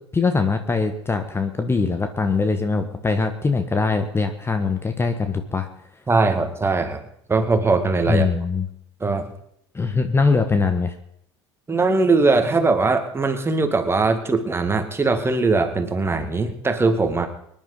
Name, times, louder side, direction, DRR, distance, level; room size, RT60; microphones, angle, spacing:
voice 1, 0.1-5.7 8.1-8.7 9.7-10.9, left 4 dB, 15° left, 8 dB, 1.4 m, -22 dB
voice 2, 6.1-7.0 7.3-8.3 9.0-9.3 11.7-17.3, right 3 dB, 15° right, 6 dB, 2.1 m, -20 dB
25.0 x 11.0 x 4.1 m, 0.72 s
figure-of-eight pair, 70°, 15 cm